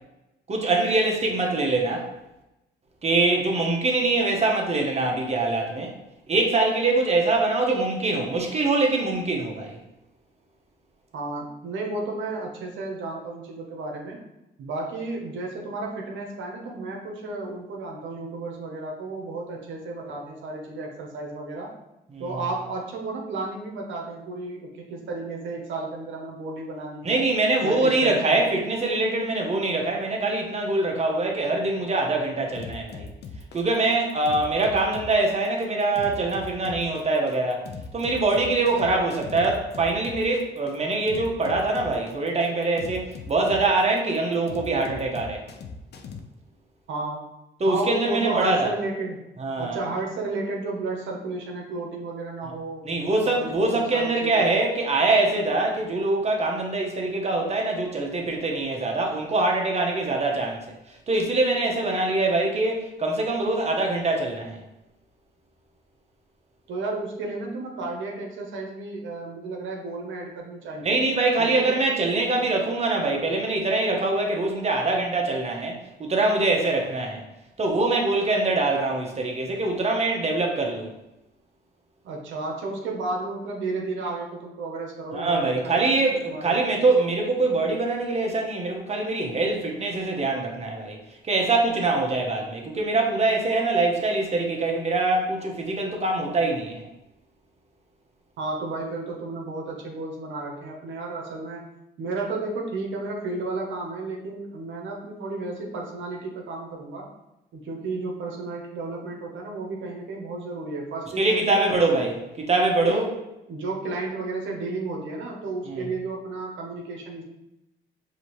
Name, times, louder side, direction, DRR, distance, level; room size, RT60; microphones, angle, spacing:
voice 1, 0.5-2.1 3.0-5.9 6.3-9.8 22.1-22.3 27.0-33.1 33.5-37.6 37.9-45.4 47.6-48.7 49.4-49.8 52.8-64.6 70.8-77.2 77.6-80.9 85.1-91.0 91.2-96.8 111.2-113.1 115.7-115.9, right 2 dB, 35° right, 1 dB, 1.0 m, -24 dB
voice 2, 11.1-14.2 14.6-21.7 22.2-27.2 27.6-28.4 46.9-47.3 47.7-49.2 49.6-52.8 53.2-54.4 66.7-71.0 71.4-71.7 82.0-86.6 98.4-101.6 102.0-107.1 107.5-112.0 112.8-113.0 113.5-117.2, right 3 dB, 75° right, 0 dB, 0.8 m, -32 dB
sound 1, 32.6-46.2, left 5 dB, 55° left, 0.6 m, -39 dB
4.8 x 2.8 x 3.0 m, 0.92 s
cardioid pair, 90°, 20 cm